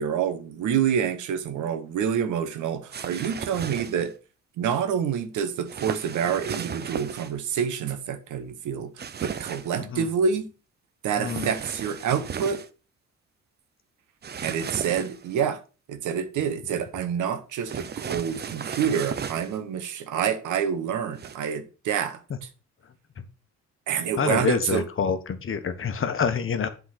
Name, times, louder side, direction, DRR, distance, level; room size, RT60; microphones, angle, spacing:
voice 1, 0.0-4.1 4.6-8.9 9.2-10.5 11.0-12.6 14.4-15.6 15.9-22.5 23.9-24.9, right 7 dB, 80° right, 1.1 m, -27 dB
sound 1, 2.9-4.1 5.7-7.3 9.0-9.8 11.2-12.7 14.2-15.3 17.7-19.6 21.2-21.4, right 7 dB, 35° right, 0.6 m, -35 dB
voice 2, 11.2-11.5 24.2-26.7, left 6 dB, 45° left, 1.1 m, -26 dB
7.6 x 4.0 x 5.8 m
cardioid pair, 90°, 30 cm